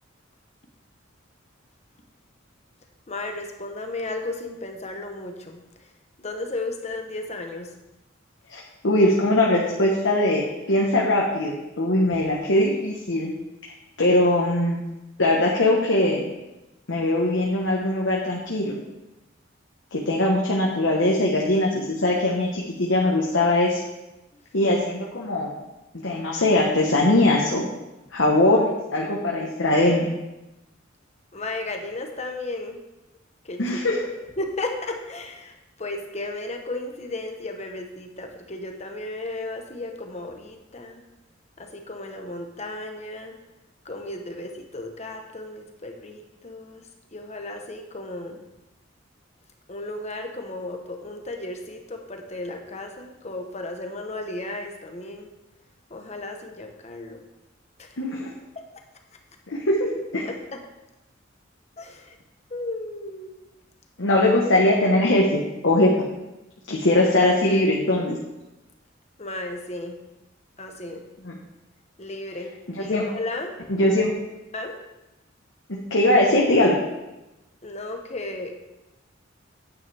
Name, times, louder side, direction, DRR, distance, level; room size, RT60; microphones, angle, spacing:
voice 1, 3.1-5.6 6.2-7.7 12.1-12.3 31.3-32.8 33.4-33.6 34.4-35.5 35.8-41.0 41.6-43.4 43.8-46.8 47.1-48.4 49.7-55.3 55.9-57.2 57.8-57.9 58.5-58.6 60.2-60.6 61.8-62.2 62.5-63.3 69.2-70.0 70.6-71.0 72.0-72.5 72.8-73.5 74.5-74.7 77.6-78.5, left 2 dB, 35° left, 4 dB, 1.1 m, -34 dB
voice 2, 8.5-13.3 14.0-14.8 15.2-16.3 16.9-18.8 19.9-23.8 24.5-25.5 26.0-27.7 28.1-30.1 33.6-34.0 58.0-58.3 59.5-60.3 64.0-65.9 66.7-68.2 71.2-71.4 72.7-73.0 73.7-74.1 75.7-76.8, left 1 dB, 70° left, -2 dB, 1.3 m, -21 dB
9.6 x 9.1 x 3.5 m, 0.98 s
head